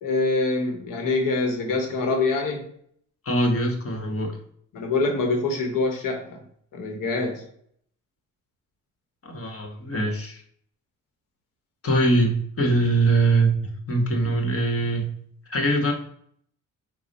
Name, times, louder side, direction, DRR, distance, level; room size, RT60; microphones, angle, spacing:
voice 1, 0.0-2.7 4.7-6.4 6.7-7.4, left 3 dB, 80° left, 3 dB, 0.9 m, -25 dB
voice 2, 3.2-4.4 9.2-10.4 11.8-15.1 15.5-15.9, right 2 dB, 45° left, 3 dB, 1.3 m, -22 dB
4.8 x 2.1 x 4.1 m, 0.64 s
cardioid pair, 70°, 32 cm